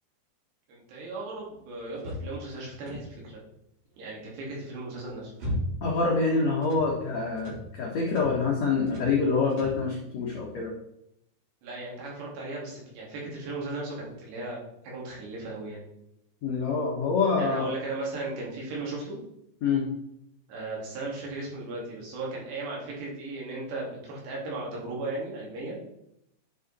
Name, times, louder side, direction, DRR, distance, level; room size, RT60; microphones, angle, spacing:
voice 1, 0.7-3.4 4.0-5.3 11.6-14.6 14.8-15.8 17.4-19.2 20.5-25.8, right 2 dB, 85° right, -4 dB, 4.7 m, -36 dB
sound 1, 2.0-3.3 4.8-6.0 6.3-6.9 7.4-7.7 8.1-8.4 8.8-9.2 9.5-9.8, left 1 dB, 65° right, 5.2 m, -36 dB
voice 2, 5.8-10.7 16.4-17.7 19.6-19.9, left 4 dB, 85° left, -1 dB, 1.5 m, -26 dB
9.6 x 5.2 x 4.1 m, 0.79 s
omnidirectional pair, 4.8 m